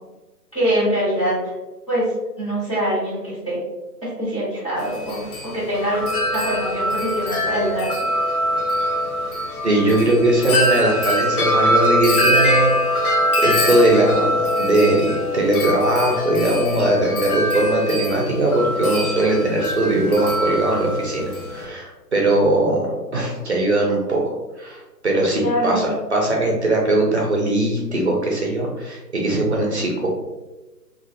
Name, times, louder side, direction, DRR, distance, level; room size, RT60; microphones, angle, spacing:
voice 1, 0.5-1.5 1.9-2.1 2.4-3.6 4.0-6.1 6.3-8.1 25.4-25.9, equal, 20° left, -11 dB, 0.6 m, -24 dB
Wind chime, 4.8-21.6, left 1 dB, 60° left, 0.6 m, -23 dB
voice 2, 9.6-13.0 13.4-21.2 21.5-24.2 24.6-30.1, right 2 dB, 45° right, -1 dB, 0.5 m, -20 dB
2.4 x 2.4 x 2.4 m, 1.1 s
figure-of-eight pair, 145°, 49 cm